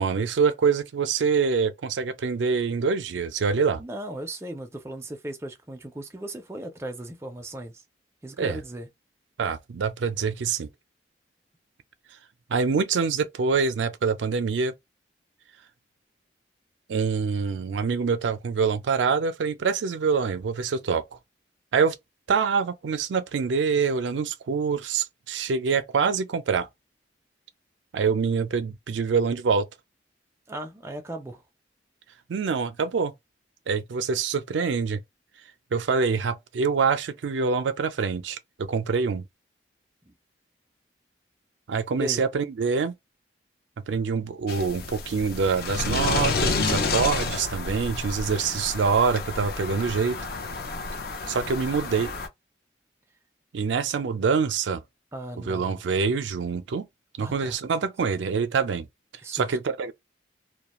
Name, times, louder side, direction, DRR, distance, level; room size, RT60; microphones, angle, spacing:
voice 1, 0.0-3.8 8.4-8.6 9.4-10.7 12.5-14.7 16.9-21.0 21.7-22.0 22.3-26.7 27.9-29.7 32.3-33.1 33.7-35.0 35.7-39.2 41.7-42.9 43.9-50.2 51.3-52.1 53.5-54.8 55.5-56.9 57.2-58.9 59.3-59.9, right 5 dB, 85° right, 0.4 m, -25 dB
voice 2, 3.8-7.8 8.2-8.9 30.5-31.4 40.1-40.2 42.0-42.2 55.1-55.8 57.2-57.6 59.2-59.6, right 1 dB, 15° right, 0.4 m, -37 dB
sound 1, 44.5-52.3, left 4 dB, 55° left, 0.5 m, -30 dB
2.3 x 2.2 x 2.9 m
head